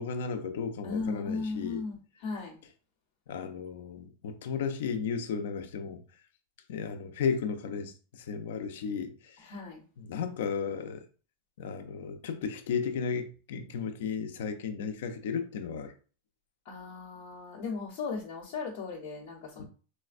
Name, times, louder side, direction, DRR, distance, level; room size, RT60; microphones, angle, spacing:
voice 1, 0.0-1.8 3.3-6.0 6.7-9.5 10.0-11.0 11.6-15.9 19.6-19.7, left 6 dB, 70° left, 0.4 m, -34 dB
voice 2, 0.8-2.6 9.4-9.8 16.6-19.6, left 4 dB, 45° left, 0.9 m, -37 dB
4.1 x 2.1 x 2.4 m
supercardioid pair, 175°, 0 cm